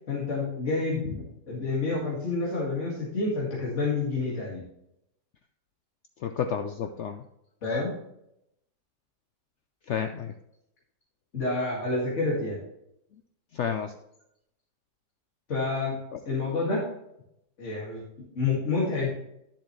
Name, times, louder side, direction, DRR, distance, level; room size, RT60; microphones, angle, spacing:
voice 1, 0.1-4.6 7.6-7.9 11.3-12.6 15.5-15.9 16.3-16.8 17.6-18.0 18.4-19.1, left 3 dB, 45° left, -5 dB, 2.4 m, -28 dB
voice 2, 6.2-7.2 9.9-10.3 13.5-13.9 16.1-16.2, left 7 dB, 85° left, 7 dB, 0.6 m, -31 dB
12.0 x 7.4 x 3.1 m, 0.81 s
omnidirectional pair, 1.8 m